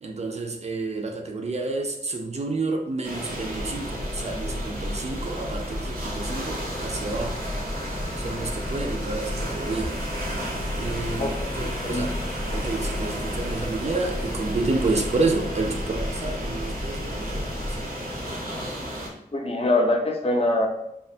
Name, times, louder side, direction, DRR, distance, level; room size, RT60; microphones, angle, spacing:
voice 1, 0.0-7.5 8.2-10.0 10.8-12.1 12.5-17.9, right 3 dB, 45° right, 3 dB, 0.4 m, -30 dB
sound 1, 3.0-19.1, equal, 80° right, 0.7 m, -34 dB
Church bell, 3.2-18.1, left 1 dB, 85° left, 0.6 m, -34 dB
voice 2, 19.3-20.7, left 2 dB, 40° left, 1 dB, 0.5 m, -23 dB
2.4 x 2.2 x 2.6 m, 0.80 s
wide cardioid pair, 75°, 15 cm